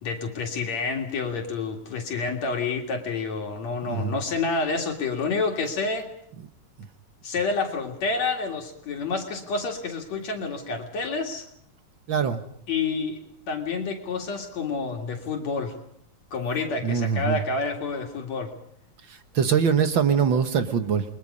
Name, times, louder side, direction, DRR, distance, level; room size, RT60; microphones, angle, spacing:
voice 1, 0.0-6.1 7.2-11.4 12.7-13.2 13.5-15.8 16.3-18.5, left 4 dB, 65° left, 2 dB, 3.3 m, -28 dB
voice 2, 12.1-12.4 16.8-17.4 19.3-21.0, right 6 dB, 50° right, 8 dB, 1.6 m, -22 dB
29.5 x 22.0 x 5.4 m, 0.70 s
omnidirectional pair, 3.4 m